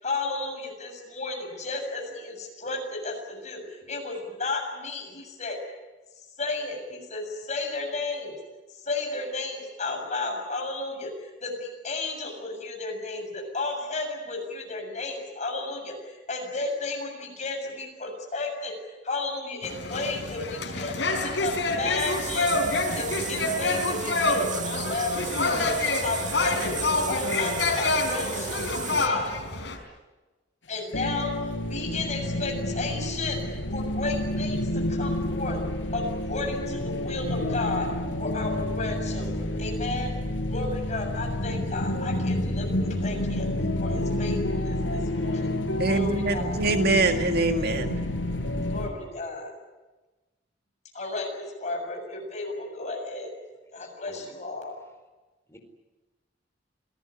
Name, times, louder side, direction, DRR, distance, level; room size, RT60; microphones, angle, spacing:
voice 1, 0.0-3.6 3.9-5.6 6.4-8.3 8.9-18.7 19.0-22.6 22.9-25.3 25.6-29.3 30.7-31.3 31.7-33.4 33.7-34.6 34.9-35.6 35.9-36.0 36.3-37.9 38.2-40.1 40.5-43.5 43.8-45.5 45.8-46.6 48.7-49.5 50.9-53.3 53.7-54.8, left 3 dB, 40° left, 2 dB, 7.2 m, -33 dB
sound 1, 19.6-29.8, left 2 dB, 70° left, 4.6 m, -27 dB
sound 2, 22.0-29.1, right 7 dB, 45° right, 1.6 m, -35 dB
sound 3, 30.9-48.9, left 1 dB, 90° left, 4.9 m, -29 dB
voice 2, 45.8-48.0, right 3 dB, 60° right, 6 dB, 2.0 m, -24 dB
voice 3, 53.8-54.3 55.5-55.6, left 1 dB, 15° left, 3 dB, 4.4 m, -51 dB
26.5 x 18.5 x 9.9 m, 1.2 s
head